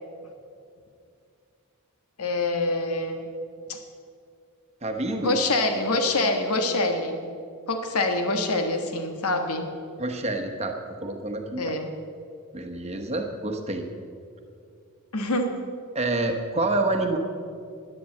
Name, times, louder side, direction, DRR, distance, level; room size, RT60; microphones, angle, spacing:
voice 1, 2.2-3.3 3.7-3.8 5.2-7.2 7.7-9.6 11.6-11.9 15.1-15.5, left 2 dB, 85° left, 6 dB, 1.5 m, -25 dB
voice 2, 4.8-5.3 10.0-11.8 12.5-13.9 15.9-17.2, right 2 dB, 30° right, 4 dB, 1.1 m, -28 dB
10.5 x 9.9 x 7.8 m, 2.4 s
head